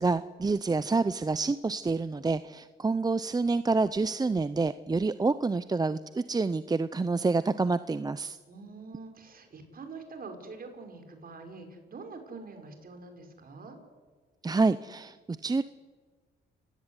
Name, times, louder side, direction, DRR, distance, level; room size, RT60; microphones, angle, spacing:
voice 1, 0.0-8.4 14.4-15.2 15.4-15.6, right 3 dB, 20° right, 13 dB, 0.7 m, -27 dB
voice 2, 8.5-13.8, right 4 dB, 45° right, 6 dB, 5.4 m, -45 dB
28.5 x 17.0 x 9.8 m, 1.5 s
cardioid pair, 90°, 20 cm